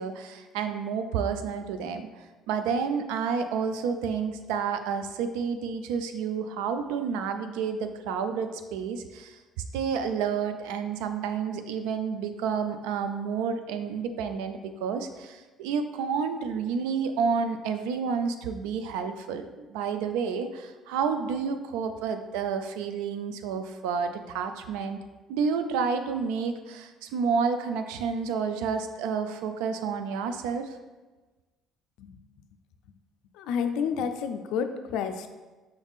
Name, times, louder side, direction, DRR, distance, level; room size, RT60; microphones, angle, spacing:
voice 1, 0.0-9.4 9.7-25.0 25.3-30.8, right 6 dB, 85° right, 8 dB, 0.3 m, -30 dB
voice 2, 33.3-35.3, left 7 dB, 75° left, 8 dB, 0.3 m, -30 dB
5.2 x 2.4 x 3.6 m, 1.2 s
supercardioid pair, 85°, 0 cm